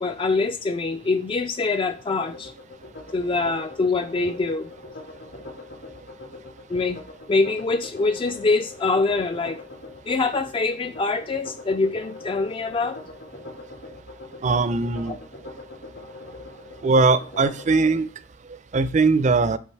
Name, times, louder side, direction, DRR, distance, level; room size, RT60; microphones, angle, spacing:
voice 1, 0.0-2.5 3.1-4.7 6.7-7.0 7.3-9.6 10.1-13.0 15.1-15.2, left 3 dB, 30° left, 0.3 m, -24 dB
sound 1, 2.0-18.0, left 2 dB, 70° left, 2.7 m, -42 dB
voice 2, 14.4-15.2 16.8-18.1 18.7-19.6, right 3 dB, 40° right, 0.4 m, -20 dB
7.2 x 3.9 x 4.5 m
head